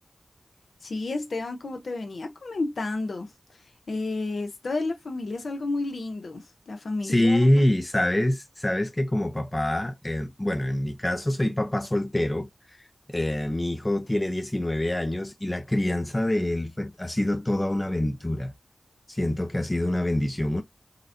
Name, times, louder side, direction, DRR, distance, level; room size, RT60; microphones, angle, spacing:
voice 1, 0.8-3.3 3.9-7.7, left 3 dB, 80° left, 0.7 m, -31 dB
voice 2, 7.0-12.8 13.1-18.5 19.1-20.6, left 1 dB, 20° left, 0.4 m, -25 dB
3.8 x 2.1 x 2.6 m
wide cardioid pair, 75°, 0 cm